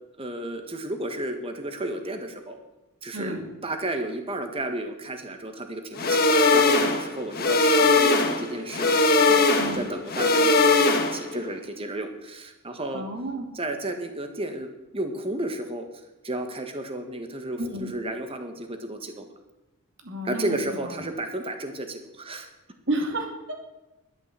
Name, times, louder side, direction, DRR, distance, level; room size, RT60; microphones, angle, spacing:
voice 1, 0.2-2.6 3.0-3.4 3.6-13.0 13.5-19.3 20.2-22.5, right 1 dB, 25° right, 6 dB, 1.6 m, -33 dB
sound 1, 6.0-11.4, left 3 dB, 45° left, 1.5 m, -20 dB
voice 2, 9.6-9.9 12.9-13.5 17.6-17.9 20.0-20.6 22.9-23.5, right 1 dB, 55° right, 2 dB, 2.7 m, -31 dB
12.0 x 10.5 x 7.7 m, 1.0 s
head